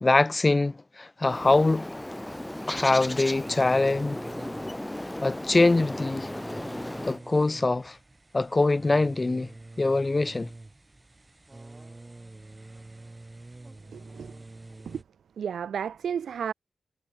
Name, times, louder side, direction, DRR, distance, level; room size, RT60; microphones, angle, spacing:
voice 1, 0.0-1.9 2.7-4.2 5.2-6.3 7.1-8.0 8.3-9.5 9.8-10.5, left 2 dB, 35° left, 0.5 m, -23 dB
Bird, 1.2-7.2, left 1 dB, 15° left, 1.4 m, -35 dB
sound 1, 2.3-15.0, right 2 dB, 30° right, 6.3 m, -47 dB
voice 2, 13.9-14.3 14.9-15.0 15.4-16.5, right 8 dB, 90° right, 0.7 m, -32 dB
cardioid pair, 45°, 0 cm